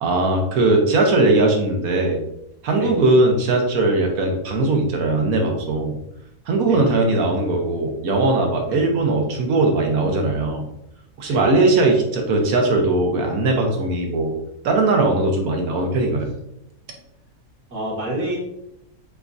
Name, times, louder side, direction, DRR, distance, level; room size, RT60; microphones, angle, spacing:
voice 1, 0.0-2.2 2.6-5.9 6.5-10.7 11.2-14.3 14.6-16.3, right 2 dB, 70° right, 2 dB, 1.2 m, -19 dB
voice 2, 17.7-18.4, right 1 dB, 90° right, -5 dB, 2.2 m, -28 dB
6.8 x 2.3 x 2.6 m, 0.82 s
omnidirectional pair, 1.6 m